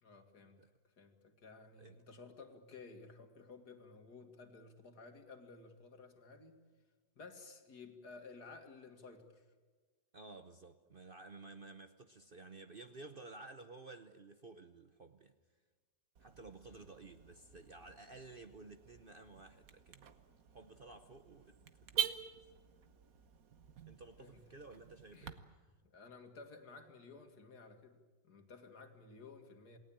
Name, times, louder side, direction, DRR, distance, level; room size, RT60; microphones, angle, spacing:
voice 1, 0.0-6.6 7.2-9.4 16.7-16.9 24.2-24.4 25.1-25.3 25.8-29.8, left 4 dB, 70° left, 6 dB, 2.6 m, -55 dB
voice 2, 10.1-15.3 16.2-20.1 20.5-22.5 23.9-25.4, right 3 dB, 40° right, 8 dB, 0.9 m, -54 dB
Car / Alarm, 16.2-25.3, right 8 dB, 60° right, 1.5 m, -46 dB
28.0 x 18.5 x 8.8 m, 1.4 s
omnidirectional pair, 1.8 m